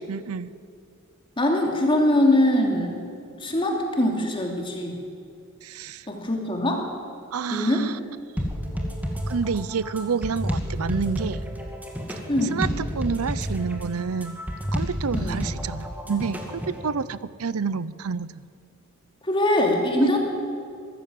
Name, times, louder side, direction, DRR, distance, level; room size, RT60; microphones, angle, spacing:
voice 1, 0.1-0.5 5.6-6.1 7.3-8.0 9.3-11.5 12.5-14.4 14.7-18.4 20.0-20.2, right 5 dB, 90° right, 17 dB, 0.6 m, -29 dB
voice 2, 1.4-3.0 3.4-5.0 6.1-6.8 7.5-7.9 12.3-12.6 15.1-15.4 19.3-20.2, left 1 dB, 25° left, 1 dB, 2.9 m, -22 dB
sound 1, 8.4-16.8, equal, 10° right, 2.4 m, -30 dB
23.5 x 14.0 x 7.8 m, 2.3 s
head